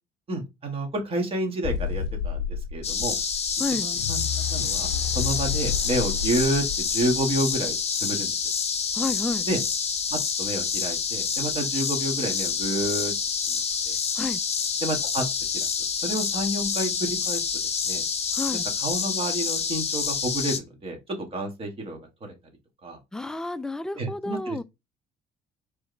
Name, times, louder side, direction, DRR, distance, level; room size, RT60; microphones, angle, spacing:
voice 1, 0.3-3.2 3.8-4.2 4.5-8.3 9.4-9.6 10.1-13.1 13.8-13.9 14.8-15.2 15.5-15.7 16.0-17.5 17.9-18.0 18.8-22.3 22.8-23.0 23.9-24.6, right 1 dB, 35° right, 1.6 m, -29 dB
sound 1, 1.6-7.7, left 7 dB, 80° left, 0.5 m, -31 dB
sound 2, 2.8-20.6, left 6 dB, 40° left, 0.8 m, -28 dB
voice 2, 8.9-9.4 14.2-14.4 18.3-18.6 23.1-24.6, left 3 dB, 5° left, 0.3 m, -30 dB
4.6 x 3.2 x 3.2 m
cardioid pair, 110°, 17 cm